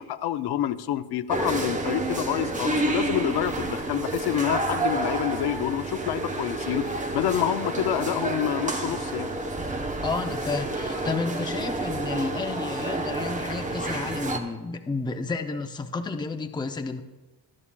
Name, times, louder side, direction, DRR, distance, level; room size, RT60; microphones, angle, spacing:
voice 1, 0.0-6.9 7.1-9.3, left 11 dB, 65° left, 11 dB, 0.6 m, -27 dB
sound 1, 1.3-14.4, right 2 dB, 20° right, 0.8 m, -29 dB
voice 2, 10.0-17.0, left 4 dB, 10° left, 6 dB, 0.4 m, -31 dB
18.0 x 12.0 x 2.2 m, 1.1 s
wide cardioid pair, 180°, 41 cm